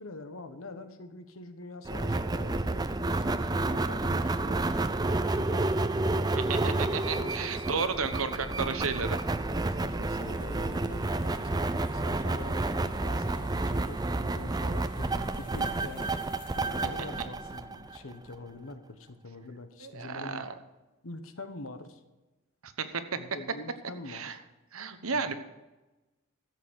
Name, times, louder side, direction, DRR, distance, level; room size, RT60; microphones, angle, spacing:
voice 1, 0.0-5.7 7.1-8.0 8.5-16.1 16.6-20.5 21.0-22.0 23.2-24.3 25.1-25.3, left 2 dB, 65° left, 9 dB, 1.2 m, -45 dB
sound 1, 1.9-18.4, right 2 dB, 20° right, 0.4 m, -30 dB
voice 2, 6.4-9.2 19.8-20.5 22.6-23.0 24.1-24.4 24.7-25.3, right 5 dB, 70° right, 9 dB, 1.1 m, -33 dB
sound 2, 10.2-16.8, left 3 dB, 40° left, 2.1 m, -55 dB
13.5 x 7.9 x 6.3 m, 1.1 s
head